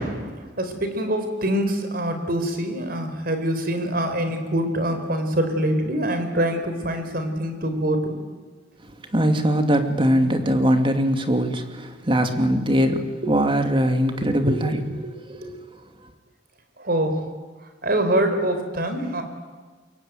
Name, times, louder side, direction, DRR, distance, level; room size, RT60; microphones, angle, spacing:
voice 1, 0.0-8.2 13.2-13.3 14.2-14.7 15.0-15.6 16.8-17.3 17.8-19.2, right 1 dB, 55° right, 4.4 m, -25 dB
voice 2, 9.1-14.8 15.3-15.4, equal, 30° right, 2.6 m, -21 dB
28.0 x 23.0 x 9.3 m
head